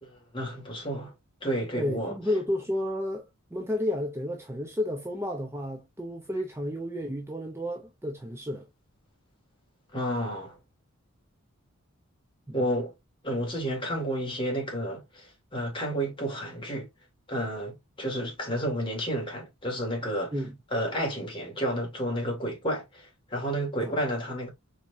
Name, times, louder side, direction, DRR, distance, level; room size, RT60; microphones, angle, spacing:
voice 1, 0.0-1.1 1.4-2.2 9.9-10.6 12.5-12.9 13.2-16.9 17.3-20.4 20.7-24.5, equal, 25° left, 2.0 m, -31 dB
voice 2, 1.7-3.3 3.5-8.7 12.5-12.6 20.3-20.6 23.8-23.9, left 1 dB, 10° right, 0.6 m, -31 dB
4.5 x 4.2 x 2.6 m
head